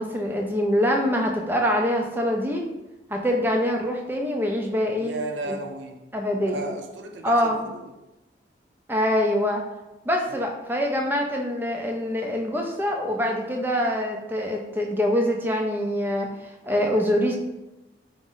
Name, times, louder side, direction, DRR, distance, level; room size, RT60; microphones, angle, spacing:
voice 1, 0.0-2.6 3.1-5.1 5.5-5.6 6.1-6.7 7.2-7.6 8.9-9.6 10.1-16.3 16.6-17.4, equal, 10° right, 0.4 m, -24 dB
voice 2, 5.0-6.0 6.5-7.9 10.3-10.4, right 2 dB, 90° right, 0.5 m, -34 dB
4.7 x 2.0 x 3.9 m
head